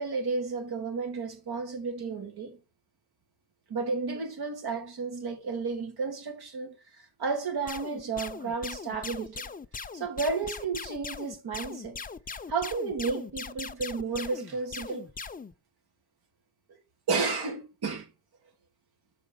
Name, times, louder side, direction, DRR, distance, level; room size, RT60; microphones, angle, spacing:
voice 1, 0.0-2.6 3.7-9.5 9.9-12.0 12.5-15.1 16.7-16.8 17.1-18.1, right 4 dB, 85° right, 2.2 m, -32 dB
sound 1, 7.7-15.5, left 5 dB, 25° left, 0.5 m, -40 dB
6.7 x 5.0 x 5.2 m
wide cardioid pair, 115°, 37 cm